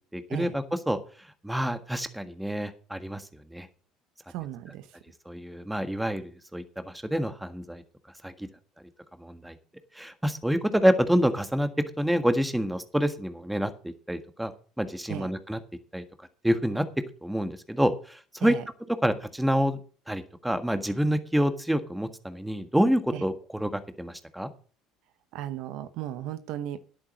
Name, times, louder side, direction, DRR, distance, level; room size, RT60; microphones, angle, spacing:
voice 1, 0.1-1.0 1.4-3.7 5.2-7.8 8.2-8.5 9.2-9.6 9.9-11.7 12.0-14.5 14.8-15.6 15.9-16.0 16.4-16.8 17.2-18.5 19.0-19.8 20.1-24.5, equal, 5° right, 9 dB, 1.6 m, -27 dB
voice 2, 4.3-4.9 15.1-15.3 18.4-18.6 23.1-23.2 25.3-26.8, right 12 dB, 70° right, 12 dB, 0.9 m, -35 dB
10.5 x 8.5 x 6.3 m, 0.40 s
supercardioid pair, 80°, 0 cm